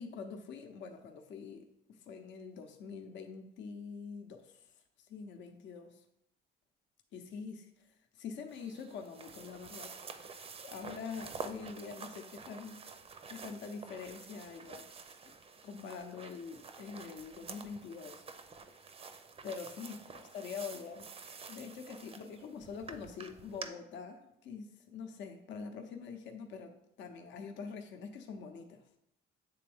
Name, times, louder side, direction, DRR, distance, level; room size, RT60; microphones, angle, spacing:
voice 1, 0.0-4.7 5.1-6.0 7.1-7.9 8.1-12.8 13.3-14.9 15.6-18.2 19.4-21.2 21.5-28.8, left 5 dB, 65° left, 5 dB, 0.7 m, -45 dB
sound 1, 8.5-23.7, right 5 dB, 30° right, 0.5 m, -49 dB
8.3 x 3.4 x 3.5 m, 0.79 s
cardioid pair, 115°, 20 cm